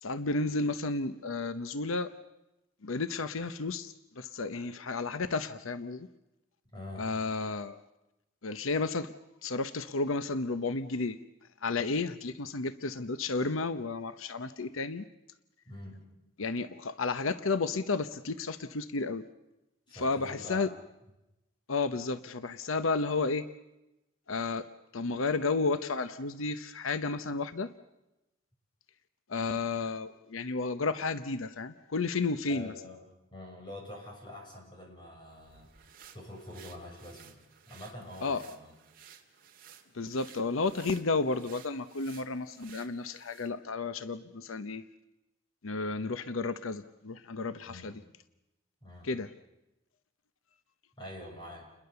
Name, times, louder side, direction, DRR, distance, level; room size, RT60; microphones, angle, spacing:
voice 1, 0.0-2.1 2.8-6.1 7.0-7.8 8.4-9.1 9.4-11.2 11.6-15.0 16.4-19.3 19.9-20.7 21.7-23.5 24.3-24.7 24.9-27.7 29.3-32.7 38.2-38.4 39.9-44.8 45.6-48.0 49.0-49.3, left 3 dB, 85° left, 12 dB, 0.9 m, -32 dB
voice 2, 6.7-7.1 15.7-16.0 19.9-20.7 32.5-33.0 33.3-35.7 36.1-38.7 47.7-47.9 48.8-49.1 51.0-51.7, left 1 dB, 20° left, 0 dB, 7.1 m, -45 dB
sound 1, 35.3-43.6, right 8 dB, 45° right, 2.4 m, -56 dB
29.5 x 21.5 x 6.9 m, 0.93 s
head